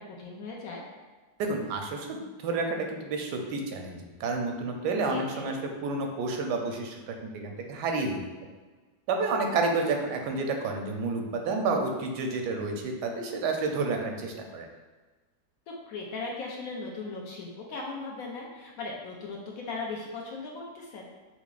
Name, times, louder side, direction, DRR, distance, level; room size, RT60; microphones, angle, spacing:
voice 1, 0.1-0.8 5.1-5.5 15.9-21.0, left 3 dB, 70° left, -2 dB, 0.9 m, -38 dB
voice 2, 1.4-8.2 9.1-14.7, right 3 dB, 85° right, 3 dB, 1.2 m, -30 dB
5.8 x 2.0 x 2.4 m, 1.3 s
omnidirectional pair, 1.8 m